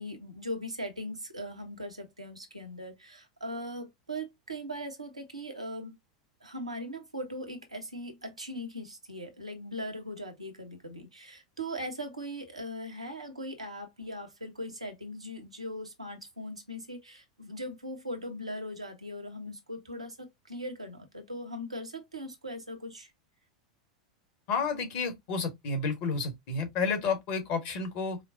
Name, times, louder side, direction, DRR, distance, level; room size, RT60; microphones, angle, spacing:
voice 1, 0.0-6.0 6.4-23.1, equal, 85° right, 1.0 m, -40 dB
voice 2, 24.5-28.2, left 4 dB, 45° left, 1.5 m, -31 dB
5.0 x 2.2 x 2.7 m
figure-of-eight pair, 85°, 3 cm